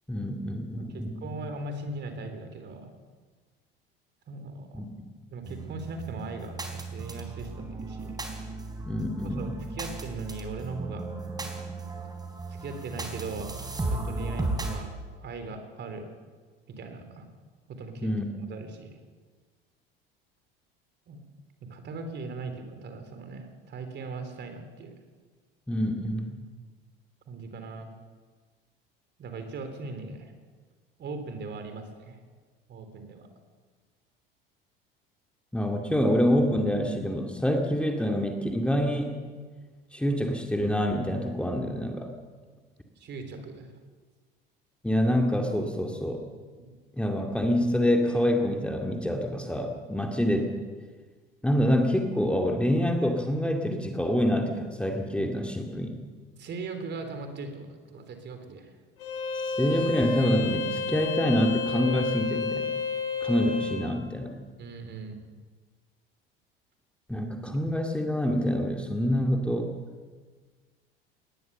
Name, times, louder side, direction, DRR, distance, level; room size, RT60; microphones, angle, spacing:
voice 1, 0.1-1.2 4.7-4.8 8.9-9.5 18.0-18.3 25.7-26.3 35.5-39.2 39.9-42.1 44.8-46.2 47.0-50.5 51.4-56.0 59.5-62.7 63.2-64.4 67.1-69.7, equal, 5° left, 2 dB, 2.3 m, -26 dB
voice 2, 0.9-2.9 4.3-4.8 5.3-8.2 9.2-11.1 11.4-11.5 12.5-13.6 13.9-14.9 15.2-16.1 16.7-17.3 17.7-18.1 18.5-18.9 21.1-21.2 21.6-25.0 27.3-27.9 29.2-30.3 31.0-32.2 32.7-33.3 43.0-43.7 46.6-46.7 56.4-58.7 64.6-65.2, right 3 dB, 35° right, 7 dB, 3.6 m, -39 dB
sound 1, 5.4-14.8, right 2 dB, 15° right, 4.1 m, -35 dB
Bowed string instrument, 59.0-63.8, left 4 dB, 70° left, 2.6 m, -30 dB
20.5 x 18.5 x 6.9 m, 1.5 s
figure-of-eight pair, 70°, 29 cm